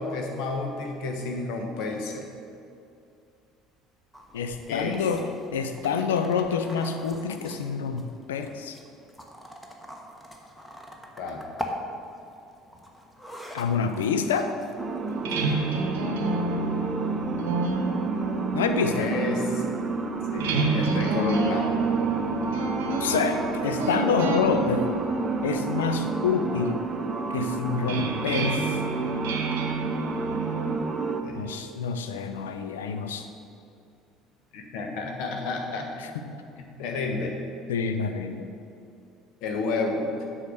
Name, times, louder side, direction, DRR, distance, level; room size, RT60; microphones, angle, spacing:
voice 1, 0.0-2.3 4.7-5.0 11.2-11.4 18.9-19.6 20.3-21.8 31.2-31.6 34.5-36.1 36.6-37.3 39.4-40.1, left 3 dB, 55° left, 2 dB, 1.3 m, -31 dB
sound 1, 4.1-15.8, left 1 dB, 5° left, 1.2 m, -43 dB
voice 2, 4.3-8.8 13.5-14.5 18.5-19.1 23.0-24.9 25.4-26.8 27.3-28.8 31.3-33.3 36.0-36.2 37.7-38.5, left 6 dB, 70° left, 7 dB, 0.6 m, -27 dB
sound 2, 14.8-31.2, right 4 dB, 25° right, 0.7 m, -30 dB
sound 3, 15.1-30.8, right 3 dB, 65° right, 0.9 m, -30 dB
8.3 x 5.6 x 6.3 m, 2.6 s
figure-of-eight pair, 60°, 0 cm